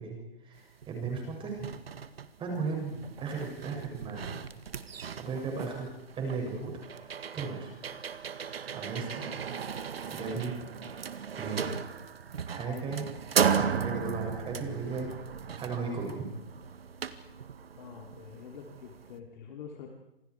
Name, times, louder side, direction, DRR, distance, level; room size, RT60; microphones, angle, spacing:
voice 1, 0.0-1.7 2.4-4.4 5.2-5.9 6.2-6.8 7.3-7.7 8.7-9.4 10.1-10.6 11.4-11.7 12.4-13.1 13.6-15.1 15.6-16.2, right 4 dB, 15° right, 0 dB, 6.9 m, -36 dB
sound 1, 0.8-0.9 1.3-19.2, right 7 dB, 70° right, 1.8 m, -36 dB
voice 2, 17.8-19.9, left 7 dB, 50° left, 2 dB, 3.6 m, -46 dB
29.0 x 27.0 x 4.8 m, 0.87 s
hypercardioid pair, 135°, 31 cm